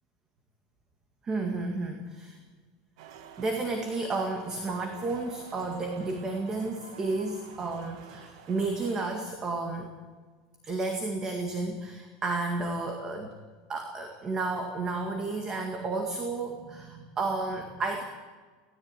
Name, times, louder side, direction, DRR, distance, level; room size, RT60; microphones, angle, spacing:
voice 1, 1.2-2.4 3.4-9.9 10.6-13.3 13.7-18.0, right 3 dB, 20° right, 4 dB, 2.0 m, -32 dB
sound 1, 3.0-9.3, right 7 dB, 70° right, 2.0 m, -49 dB
18.5 x 17.0 x 9.1 m, 1.4 s
supercardioid pair, 170°, 3 cm